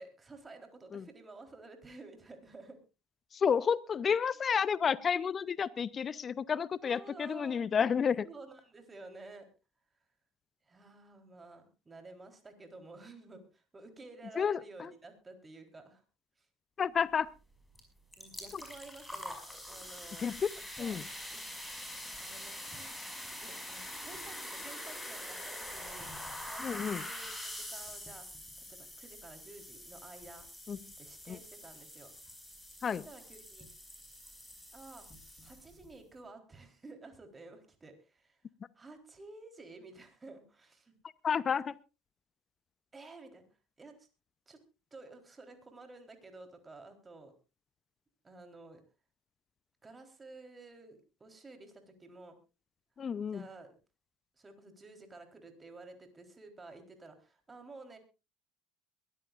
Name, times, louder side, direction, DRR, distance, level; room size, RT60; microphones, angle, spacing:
voice 1, 0.0-2.8 6.8-7.7 8.2-9.5 10.7-16.0 18.2-19.4 19.7-20.3 20.8-21.0 21.3-21.4 22.2-22.9 23.4-28.3 28.6-30.5 31.0-32.1 32.9-33.7 34.7-35.1 35.4-38.4 38.8-41.0 42.9-43.4 43.8-44.1 44.5-44.6 44.9-47.3 48.2-48.8 49.8-52.4 53.3-53.7 54.4-58.0, right 3 dB, 20° right, 6 dB, 3.8 m, -52 dB
voice 2, 3.3-8.3 14.3-14.9 16.8-17.3 18.5-18.6 20.2-20.5 20.8-21.1 26.6-27.1 30.7-30.8 31.3-31.4 32.8-33.1 41.2-41.8 53.0-53.5, left 7 dB, 35° left, 20 dB, 0.6 m, -31 dB
sound 1, 17.7-17.8 18.1-35.9, left 1 dB, 5° left, 5.4 m, -45 dB
22.5 x 14.5 x 2.5 m, 0.30 s
hypercardioid pair, 70°, 0 cm